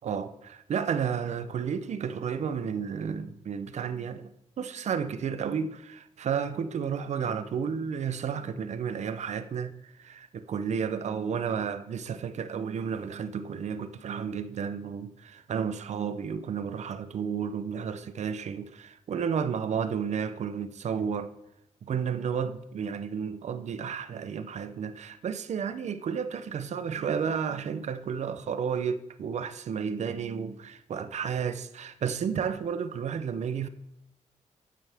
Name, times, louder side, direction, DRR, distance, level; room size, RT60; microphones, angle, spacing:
voice 1, 0.0-4.3 4.6-21.3 21.8-33.7, right 7 dB, 70° right, 0.7 m, -32 dB
11.0 x 9.2 x 3.5 m
wide cardioid pair, 145°, 12 cm